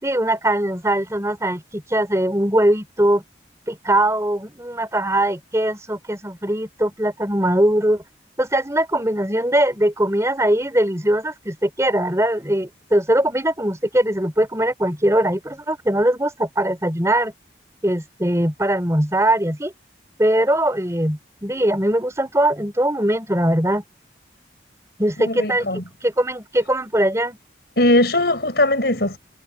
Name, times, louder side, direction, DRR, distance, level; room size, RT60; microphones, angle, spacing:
voice 1, 0.0-3.2 3.7-8.0 8.4-17.3 17.8-19.7 20.2-23.8 25.0-27.4, right 1 dB, 15° right, 4.0 m, -21 dB
voice 2, 25.2-25.8 27.8-29.2, left 1 dB, 65° left, 5.6 m, -19 dB
head